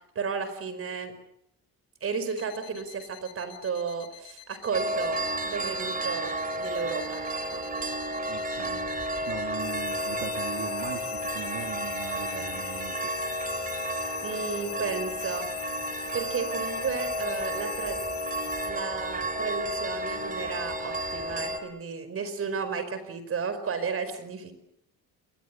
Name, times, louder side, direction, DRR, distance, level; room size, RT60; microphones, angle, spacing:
voice 1, 0.1-1.1 2.0-7.6 14.2-15.5 16.1-18.0 18.6-24.5, right 5 dB, 40° right, 11 dB, 5.0 m, -33 dB
sound 1, 2.3-18.7, left 11 dB, 45° left, 5.4 m, -41 dB
sound 2, 4.7-21.6, right 1 dB, 25° right, 4.0 m, -32 dB
voice 2, 8.3-8.9 9.3-13.1, right 11 dB, 70° right, 5 dB, 2.1 m, -39 dB
28.0 x 22.5 x 8.4 m, 0.76 s
cardioid pair, 160°, 36 cm